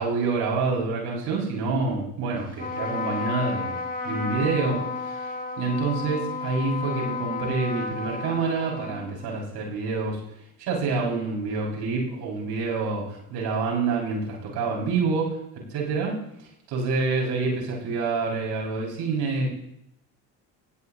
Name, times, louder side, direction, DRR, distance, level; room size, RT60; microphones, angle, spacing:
voice 1, 0.0-10.2 10.6-19.5, right 4 dB, 80° right, -3 dB, 6.6 m, -27 dB
Trumpet, 2.5-9.4, left 4 dB, 20° left, 4.2 m, -32 dB
20.0 x 17.0 x 3.1 m, 0.81 s
supercardioid pair, 75°, 39 cm